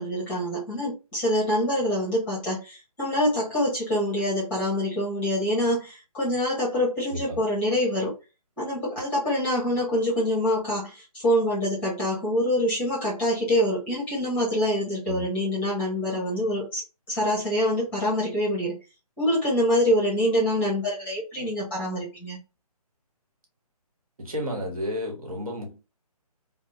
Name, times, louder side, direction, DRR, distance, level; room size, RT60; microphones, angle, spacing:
voice 1, 0.0-8.1 8.6-18.8 19.2-22.4, equal, 5° left, 0.8 m, -25 dB
voice 2, 7.0-7.4 15.1-15.3 24.2-25.8, left 1 dB, 60° right, 1.2 m, -32 dB
2.7 x 2.0 x 2.6 m
hypercardioid pair, 165°, 20 cm